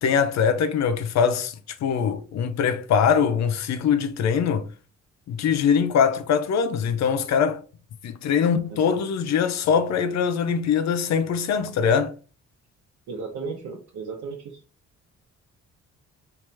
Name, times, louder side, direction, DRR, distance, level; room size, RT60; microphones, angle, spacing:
voice 1, 0.0-4.7 5.3-7.6 8.0-12.1, left 7 dB, 60° left, 0.6 m, -22 dB
voice 2, 8.4-8.8 13.1-14.6, right 4 dB, 70° right, 0.9 m, -35 dB
3.2 x 2.8 x 3.4 m
cardioid pair, 90°, 30 cm